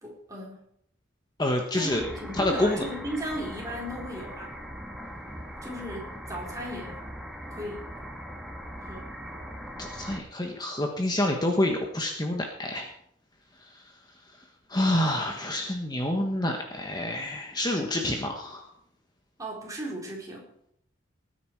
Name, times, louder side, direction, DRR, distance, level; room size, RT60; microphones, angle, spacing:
voice 1, 0.0-0.7 1.8-4.5 5.6-7.0 7.5-7.9 8.8-9.0 9.3-9.5 19.4-20.5, equal, 20° right, -2 dB, 4.4 m, -36 dB
voice 2, 1.4-2.0 2.3-2.9 9.8-12.9 13.6-14.4 14.7-18.7, left 1 dB, 20° left, 2 dB, 1.4 m, -28 dB
sound 1, 1.9-10.2, equal, ahead, 1.8 m, -40 dB
19.5 x 9.6 x 4.8 m, 0.70 s
head